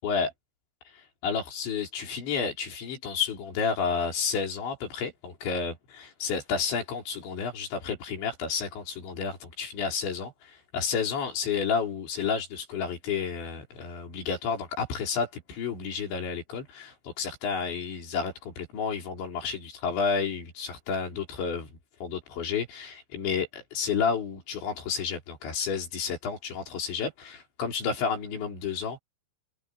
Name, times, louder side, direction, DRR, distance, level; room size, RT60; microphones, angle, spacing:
voice 1, 1.2-21.7 22.0-29.0, left 6 dB, 90° left, 6.9 m, -31 dB
omnidirectional pair, 5.1 m